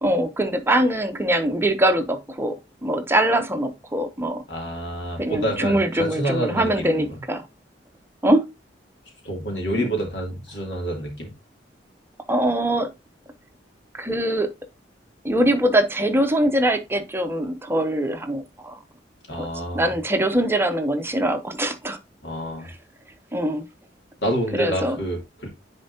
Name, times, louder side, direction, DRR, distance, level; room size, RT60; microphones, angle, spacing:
voice 1, 0.0-4.4 5.2-7.4 8.2-8.5 9.8-9.9 12.3-12.9 13.9-14.5 15.2-18.8 19.4-19.5 19.7-22.0 22.6-22.7 23.3-23.7 24.5-25.0, right 1 dB, 15° right, 0.6 m, -22 dB
voice 2, 4.5-7.2 9.2-11.3 19.3-19.9 22.2-22.7 24.2-25.5, right 1 dB, 80° left, 2.7 m, -28 dB
10.0 x 4.3 x 2.7 m
head